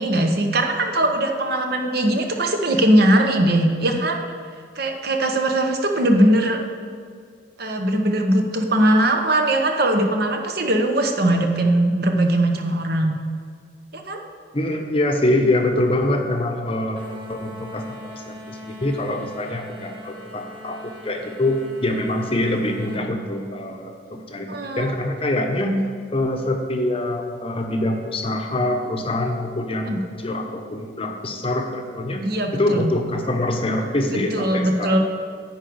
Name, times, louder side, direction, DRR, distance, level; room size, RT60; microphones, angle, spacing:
voice 1, 0.0-4.2 4.8-6.6 7.6-13.1 13.9-14.2 24.5-24.9 29.8-30.0 32.2-32.9 34.1-35.0, right 1 dB, 55° right, 3 dB, 0.9 m, -20 dB
voice 2, 14.5-17.0 17.3-25.8 26.1-32.3 32.5-35.0, left 1 dB, 30° left, 3 dB, 0.8 m, -24 dB
sound 1, 17.0-23.0, left 1 dB, 25° right, 1.4 m, -40 dB
10.0 x 4.7 x 7.8 m, 2.1 s
head